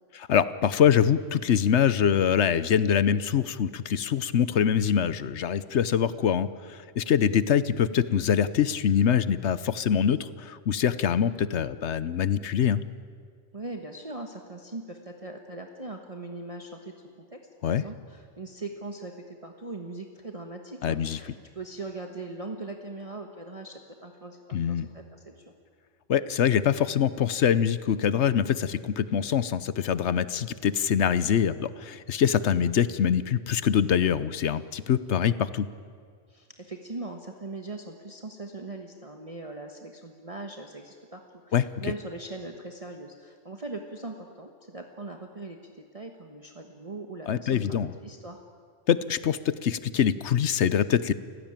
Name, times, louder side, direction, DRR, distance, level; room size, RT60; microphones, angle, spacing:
voice 1, 0.1-12.8 17.6-17.8 20.8-21.2 24.5-24.9 26.1-35.7 41.5-41.6 47.3-47.9 48.9-51.1, left 8 dB, 65° left, 15 dB, 1.1 m, -24 dB
voice 2, 13.5-25.5 36.3-48.4, right 2 dB, 30° right, 3 dB, 1.4 m, -40 dB
29.5 x 16.0 x 9.0 m, 2.1 s
omnidirectional pair, 1.3 m